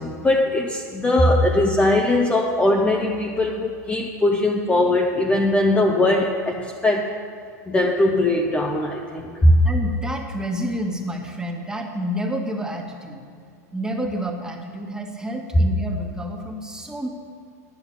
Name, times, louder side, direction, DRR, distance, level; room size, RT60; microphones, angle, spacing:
voice 1, 0.0-7.1 7.7-9.6, left 1 dB, 15° left, 0 dB, 0.9 m, -20 dB
voice 2, 9.6-13.2 13.7-17.1, right 1 dB, 5° right, 1 dB, 1.6 m, -29 dB
10.5 x 6.5 x 8.7 m, 2.3 s
hypercardioid pair, 100°, 9 cm